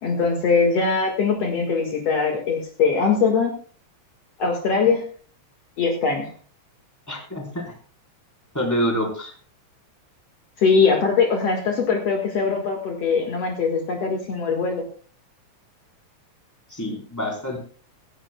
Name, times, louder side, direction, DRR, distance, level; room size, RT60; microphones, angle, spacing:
voice 1, 0.0-3.5 4.4-5.0 5.8-6.3 10.6-14.8, left 5 dB, 60° left, 2 dB, 2.8 m, -21 dB
voice 2, 7.1-7.6 8.5-9.3 16.7-17.6, equal, 5° left, -1 dB, 4.1 m, -26 dB
24.5 x 11.0 x 2.3 m, 0.42 s
omnidirectional pair, 3.4 m